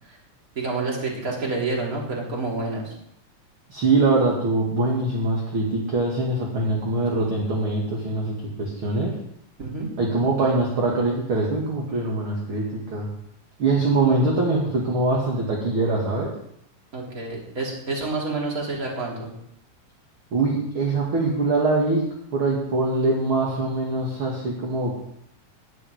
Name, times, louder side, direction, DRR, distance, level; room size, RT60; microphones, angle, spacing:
voice 1, 0.6-2.9 9.6-9.9 16.9-19.3, right 3 dB, 25° right, -3 dB, 3.6 m, -28 dB
voice 2, 3.7-8.3 8.6-9.1 10.0-13.1 13.6-16.3 20.3-22.0 22.3-25.0, right 2 dB, 40° right, -3 dB, 2.8 m, -23 dB
15.0 x 5.6 x 9.9 m, 0.72 s
omnidirectional pair, 3.9 m